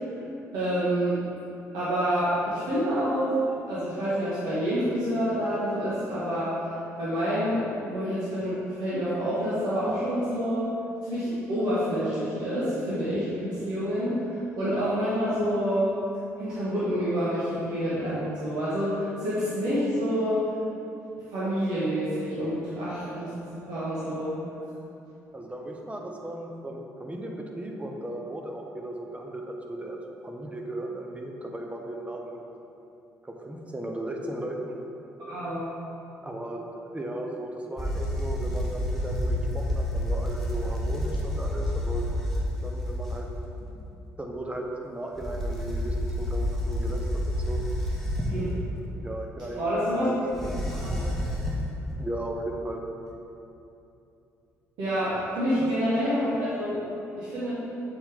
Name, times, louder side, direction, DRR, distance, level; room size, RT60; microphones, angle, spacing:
voice 1, 0.5-1.2 1.7-3.3 3.7-6.5 7.0-10.7 11.0-16.0 16.4-20.4 21.3-23.3 23.7-24.4 35.2-35.7 48.3-48.4 49.6-50.1 50.8-51.0 54.8-56.8 57.2-57.5, equal, 55° right, -11 dB, 1.6 m, -27 dB
voice 2, 25.3-30.0 30.2-32.4 33.2-34.8 36.2-42.1 42.6-43.8 44.2-47.6 49.0-50.1 52.0-52.9 55.1-55.2 55.6-55.7, right 1 dB, 15° right, 1 dB, 0.9 m, -36 dB
sound 1, 37.8-43.4 45.1-48.6 50.3-51.7, left 1 dB, 5° left, 1.4 m, -29 dB
7.0 x 5.6 x 3.7 m, 2.8 s
figure-of-eight pair, 45°, 8 cm